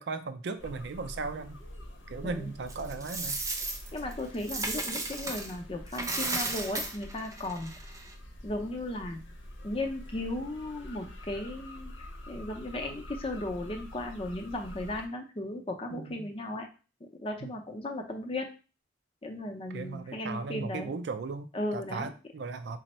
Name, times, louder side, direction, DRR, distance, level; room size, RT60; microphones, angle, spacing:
voice 1, 0.0-1.6 2.1-3.4 15.9-16.3 17.4-17.5 19.7-22.8, right 4 dB, 65° right, 9 dB, 0.4 m, -37 dB
sound 1, 0.6-15.1, left 1 dB, 85° left, 0.8 m, -46 dB
Coin (dropping), 2.7-5.5 5.9-8.1, right 2 dB, 20° right, 0.6 m, -34 dB
voice 2, 3.9-7.7 8.4-9.2 9.6-11.9 12.3-16.7 17.2-18.5 19.2-20.9 21.5-22.1, left 1 dB, 30° left, 4 dB, 0.5 m, -36 dB
3.3 x 2.0 x 4.2 m, 0.33 s
head